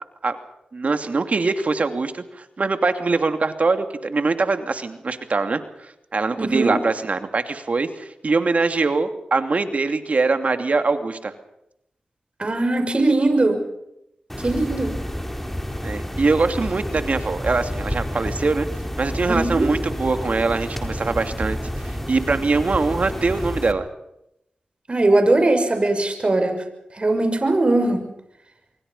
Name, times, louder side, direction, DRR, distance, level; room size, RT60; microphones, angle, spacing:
voice 1, 0.7-11.3 15.8-18.7 19.0-21.6 21.8-23.9, right 3 dB, 60° right, 8 dB, 2.8 m, -23 dB
voice 2, 6.4-6.8 12.4-13.6 14.4-14.9 19.3-19.7 24.9-26.6 26.9-28.1, right 2 dB, 40° right, 6 dB, 6.2 m, -20 dB
sound 1, 14.3-23.7, equal, 10° left, 4.0 m, -29 dB
27.0 x 23.0 x 5.6 m, 0.80 s
cardioid pair, 45°, 3 cm